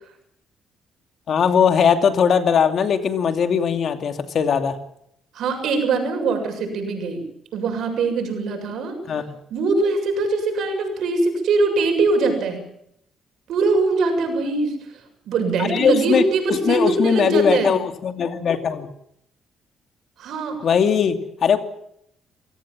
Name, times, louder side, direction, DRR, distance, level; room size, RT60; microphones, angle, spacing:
voice 1, 1.3-4.8 9.1-9.2 15.6-16.2 16.5-18.9 20.6-21.6, left 7 dB, 60° left, 8 dB, 2.6 m, -19 dB
voice 2, 5.3-7.2 7.5-9.0 9.5-12.6 13.5-14.9 15.3-17.8 20.2-20.6, right 3 dB, 75° right, 5 dB, 7.3 m, -22 dB
27.5 x 17.5 x 7.5 m, 0.74 s
cardioid pair, 90°, 0 cm